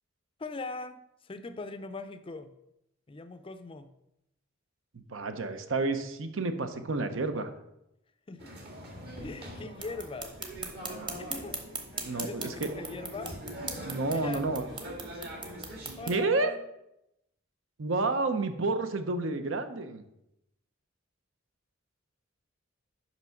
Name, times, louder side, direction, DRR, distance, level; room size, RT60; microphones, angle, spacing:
voice 1, 0.4-2.5 3.1-3.9 8.3-8.5 9.2-10.4 11.2-11.6 11.9-13.4 14.1-14.4 16.0-16.6, left 3 dB, 25° left, 11 dB, 0.4 m, -41 dB
voice 2, 4.9-7.5 12.0-12.7 13.8-14.6 16.1-16.5 17.8-20.0, right 3 dB, 75° right, 8 dB, 0.7 m, -30 dB
sound 1, 8.4-16.1, equal, 55° right, 1.9 m, -43 dB
sound 2, 9.8-16.2, right 4 dB, 25° right, 1.0 m, -41 dB
5.9 x 5.3 x 5.8 m, 0.85 s
head